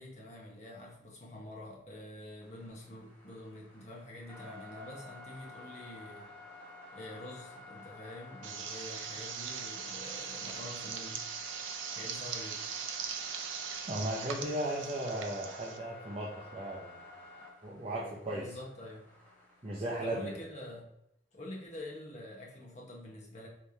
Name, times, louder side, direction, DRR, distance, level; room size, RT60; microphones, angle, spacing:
voice 1, 0.0-6.3 6.9-11.2 11.9-12.7 18.3-19.0 20.0-20.8 21.3-23.5, left 1 dB, 40° left, -2 dB, 1.1 m, -46 dB
sound 1, 2.4-20.0, left 3 dB, 10° left, 1.2 m, -52 dB
sound 2, 8.4-15.8, right 7 dB, 85° right, 0.5 m, -40 dB
voice 2, 13.9-17.1 17.6-18.6 19.6-20.3, right 1 dB, 30° right, -5 dB, 0.6 m, -36 dB
5.0 x 3.3 x 2.8 m, 0.80 s
head